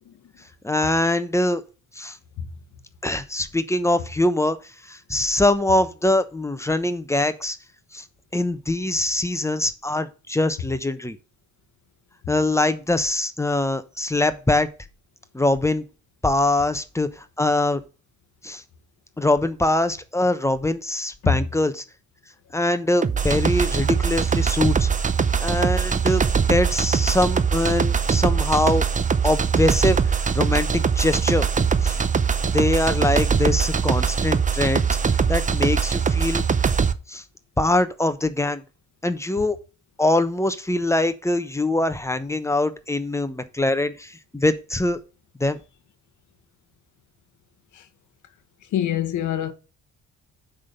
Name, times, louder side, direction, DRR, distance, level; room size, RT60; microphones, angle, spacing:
voice 1, 0.6-1.6 1.9-2.2 3.0-4.6 4.9-7.6 7.9-8.0 8.3-11.2 12.3-14.7 15.3-15.8 16.2-17.8 18.4-18.6 19.2-21.8 22.5-24.9 25.4-26.2 26.5-28.8 29.2-31.5 31.8-32.0 32.5-36.4 37.1-37.2 37.6-38.6 39.0-39.6 40.0-45.0 45.4-45.6, left 2 dB, 10° left, 1.0 m, -23 dB
sound 1, 23.0-36.9, right 6 dB, 25° right, 0.7 m, -22 dB
voice 2, 48.7-49.5, left 11 dB, 75° left, 1.2 m, -24 dB
9.7 x 3.7 x 6.8 m
cardioid pair, 90°, 30 cm